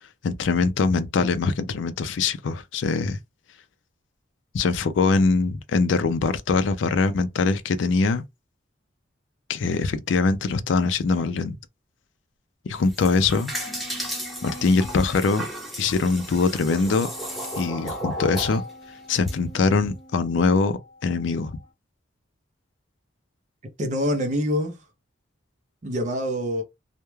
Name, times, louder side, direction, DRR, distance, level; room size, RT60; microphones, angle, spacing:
voice 1, 0.2-3.2 4.5-8.2 9.5-11.5 12.7-13.5 14.4-15.5 15.8-17.1 17.6-18.6 19.1-21.6, left 4 dB, 70° left, 0.4 m, -23 dB
sound 1, 12.7-19.3, right 1 dB, ahead, 0.8 m, -35 dB
sound 2, 13.5-21.7, left 2 dB, 40° left, 0.8 m, -42 dB
voice 2, 23.8-24.8 25.8-26.6, equal, 40° right, 0.6 m, -25 dB
2.3 x 2.1 x 3.0 m
head